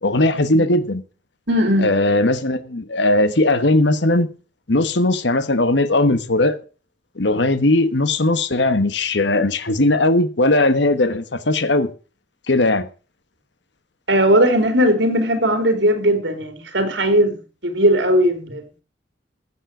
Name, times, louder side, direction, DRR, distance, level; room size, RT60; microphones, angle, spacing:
voice 1, 0.0-1.0 1.8-4.3 4.7-6.6 7.2-11.9 12.5-12.9, left 2 dB, 65° left, 1.3 m, -18 dB
voice 2, 1.5-1.9 14.1-17.4 17.6-18.8, equal, 65° right, 3.5 m, -18 dB
15.5 x 7.7 x 6.2 m
head